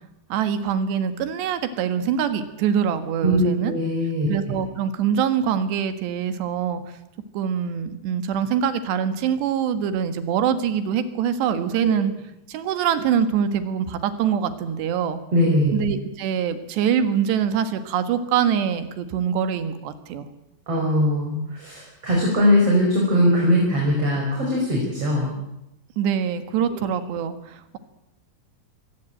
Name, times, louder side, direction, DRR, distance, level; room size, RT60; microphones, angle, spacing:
voice 1, 0.3-3.7 4.3-6.8 7.3-12.1 12.5-15.2 15.7-20.3 26.0-27.8, right 8 dB, 90° right, 10 dB, 3.8 m, -24 dB
voice 2, 3.2-4.3 11.8-11.9 15.3-15.7 20.7-25.3 26.7-26.8, equal, 35° right, -2 dB, 6.3 m, -21 dB
23.5 x 18.0 x 9.1 m, 0.86 s
omnidirectional pair, 4.8 m